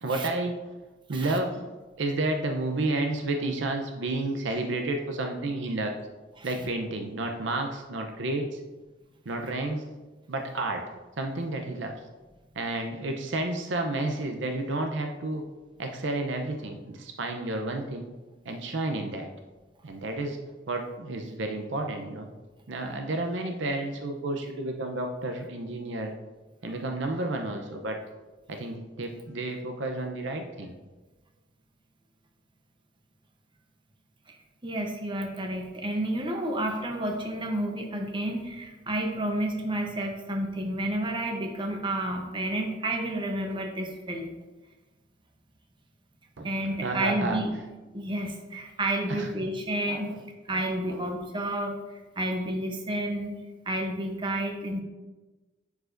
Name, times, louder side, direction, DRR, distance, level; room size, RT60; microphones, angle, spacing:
voice 1, 0.0-0.5 1.1-1.6 2.0-5.9 6.4-8.5 9.3-9.9 10.3-10.8 11.2-11.9 12.6-15.4 15.8-18.0 18.5-19.3 19.8-20.4 20.7-22.3 22.7-26.1 26.6-28.0 28.5-30.7 46.4-46.5 46.8-47.4 49.1-49.3 49.9-50.0, right 2 dB, 65° right, 4 dB, 0.6 m, -31 dB
voice 2, 34.6-44.3 46.4-47.5 47.9-50.1 50.5-53.4 53.7-54.8, right 1 dB, 25° right, 2 dB, 0.8 m, -30 dB
10.5 x 4.8 x 2.6 m, 1.2 s
head